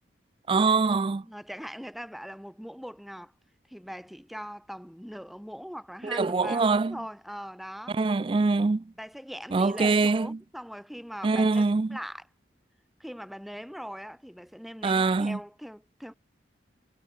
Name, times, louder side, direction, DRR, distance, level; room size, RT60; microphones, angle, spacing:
voice 1, 0.5-1.2 6.0-7.0 7.9-8.8 9.5-10.4 11.2-12.0 14.8-15.4, right 3 dB, 30° right, 0.3 m, -24 dB
voice 2, 1.2-3.3 3.7-8.0 9.0-11.6 11.9-12.3 13.0-16.1, equal, ahead, 2.6 m, -41 dB
head